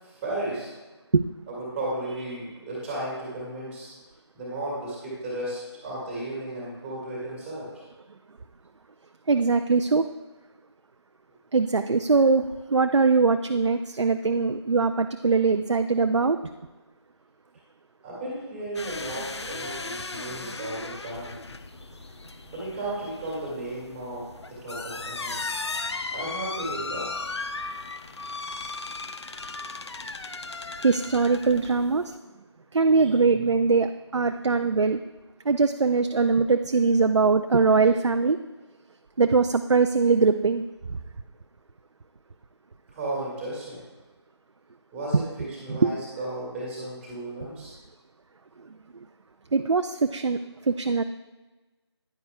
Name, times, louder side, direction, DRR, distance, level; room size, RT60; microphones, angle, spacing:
voice 1, 0.0-0.7 1.5-3.9 4.3-7.7 18.0-21.4 22.5-24.2 24.5-25.3 26.1-27.1 42.9-43.8 44.9-47.7, right 1 dB, 5° right, -6 dB, 1.7 m, -34 dB
voice 2, 9.3-10.1 11.5-16.4 30.8-32.0 32.7-35.0 35.5-38.4 39.2-41.0 45.7-46.0 48.9-49.1 49.5-51.0, right 4 dB, 85° right, 8 dB, 0.4 m, -22 dB
sound 1, 18.7-32.2, left 3 dB, 70° left, 0.5 m, -36 dB
9.8 x 9.3 x 2.2 m, 1.2 s
figure-of-eight pair, 160°, 15 cm